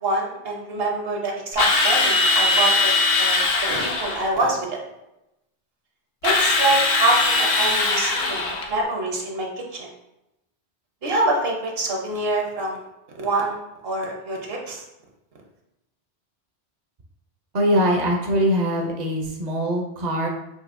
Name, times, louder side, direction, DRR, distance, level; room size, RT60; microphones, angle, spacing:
voice 1, 0.0-4.8 6.2-9.9 11.0-12.9 13.1-13.6 13.8-14.8, right 2 dB, 65° right, 0 dB, 1.0 m, -25 dB
Drill, 1.6-4.3 6.2-8.7, left 3 dB, 75° left, 0.9 m, -20 dB
voice 2, 17.5-20.3, equal, 45° right, 0 dB, 0.6 m, -22 dB
5.4 x 2.8 x 2.5 m, 0.89 s
omnidirectional pair, 1.1 m